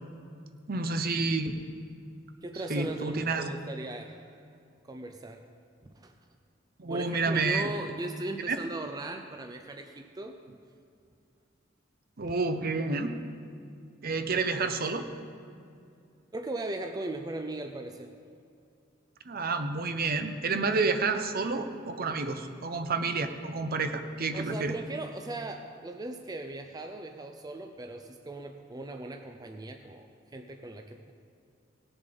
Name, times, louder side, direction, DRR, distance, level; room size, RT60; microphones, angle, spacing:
voice 1, 0.7-1.6 2.7-3.5 6.8-7.7 8.5-8.6 12.2-13.2 14.0-15.0 19.3-24.8, right 3 dB, 50° right, 8 dB, 0.8 m, -29 dB
voice 2, 2.4-4.4 4.8-5.4 5.9-6.1 6.9-10.4 16.3-18.1 24.3-31.1, right 2 dB, 20° right, 5 dB, 0.5 m, -38 dB
17.5 x 7.2 x 5.3 m, 2.4 s
head